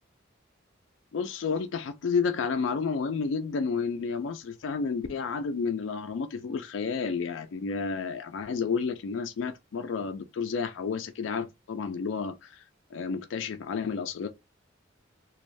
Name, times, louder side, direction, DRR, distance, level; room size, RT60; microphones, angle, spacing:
voice 1, 1.1-12.6 12.9-14.3, left 5 dB, 70° left, 0.3 m, -31 dB
2.6 x 2.3 x 3.1 m
head